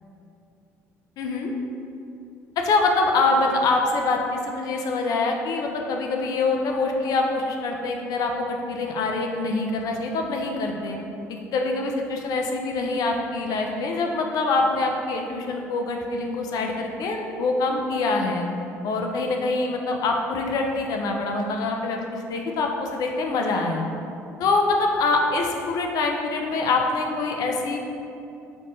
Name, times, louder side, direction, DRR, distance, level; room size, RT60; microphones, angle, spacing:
voice 1, 1.2-1.5 2.6-11.0 11.3-18.5 18.8-23.9 24.4-27.8, left 3 dB, 55° left, 2 dB, 0.5 m, -25 dB
3.1 x 2.9 x 3.2 m, 2.7 s
hypercardioid pair, 60°, 7 cm